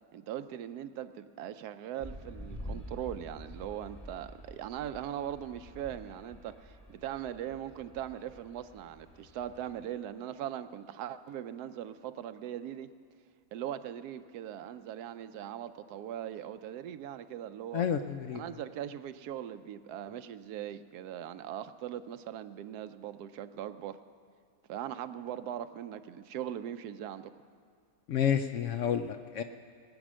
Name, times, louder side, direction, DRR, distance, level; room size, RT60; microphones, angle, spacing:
voice 1, 0.1-12.9 13.5-17.9 18.3-24.0 24.7-27.3, right 10 dB, 80° right, 12 dB, 1.1 m, -40 dB
sound 1, 2.0-10.0, equal, 20° left, 1.3 m, -48 dB
voice 2, 17.7-18.4 28.1-29.4, left 8 dB, 70° left, 8 dB, 0.7 m, -30 dB
20.0 x 8.9 x 6.2 m, 2.1 s
omnidirectional pair, 1.7 m